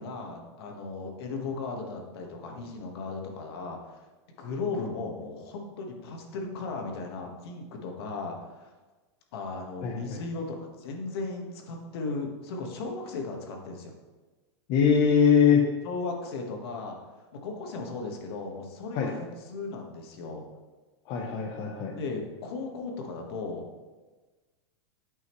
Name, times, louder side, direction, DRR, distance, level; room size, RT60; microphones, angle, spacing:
voice 1, 0.0-4.1 4.4-8.7 9.3-13.9 15.8-17.0 17.3-20.4 21.9-23.6, left 3 dB, 60° left, 2 dB, 1.5 m, -36 dB
voice 2, 9.8-10.2 14.7-15.6 18.9-19.1 21.1-22.0, left 7 dB, 35° left, 0 dB, 0.8 m, -22 dB
9.4 x 5.5 x 3.1 m, 1.3 s
supercardioid pair, 155°, 15 cm